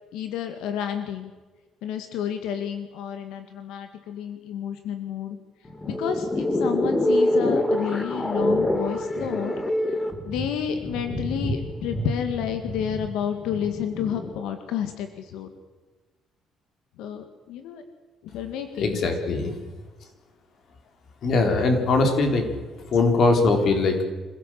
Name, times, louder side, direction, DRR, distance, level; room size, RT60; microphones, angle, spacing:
voice 1, 0.1-1.3 1.8-5.4 5.9-9.5 10.3-15.5 17.0-17.8 18.2-19.5 22.0-22.2, left 9 dB, 90° left, 7 dB, 2.1 m, -30 dB
sound 1, 5.6-14.4, left 1 dB, 15° left, 1.9 m, -26 dB
voice 2, 18.8-19.6 21.2-22.4 22.9-24.0, left 3 dB, 45° left, 5 dB, 4.1 m, -21 dB
26.0 x 16.5 x 7.8 m, 1.3 s
cardioid pair, 160°, 0 cm